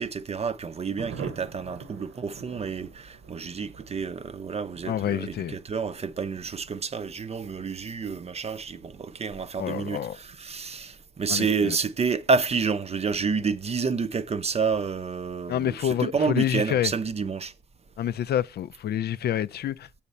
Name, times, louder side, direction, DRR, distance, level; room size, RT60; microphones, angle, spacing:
voice 1, 0.0-17.5, right 5 dB, 30° right, 0.6 m, -29 dB
Thunder, 1.0-17.1 17.4-17.5 17.7-17.9 18.1-18.6, right 6 dB, 65° right, 1.0 m, -48 dB
voice 2, 4.9-5.6 9.6-10.2 11.3-11.8 15.5-16.9 18.0-20.0, left 10 dB, 55° left, 0.4 m, -28 dB
7.2 x 4.2 x 6.8 m
cardioid pair, 90°, 20 cm